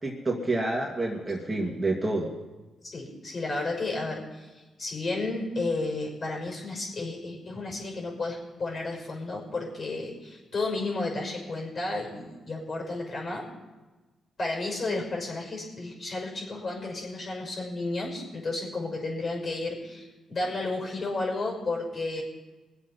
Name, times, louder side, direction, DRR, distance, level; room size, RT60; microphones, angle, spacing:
voice 1, 0.0-2.3, right 2 dB, 25° right, -2 dB, 2.4 m, -28 dB
voice 2, 2.8-13.5 14.4-22.2, left 2 dB, 50° left, 0 dB, 5.8 m, -32 dB
22.5 x 8.0 x 5.8 m, 1.2 s
cardioid pair, 65°, 0 cm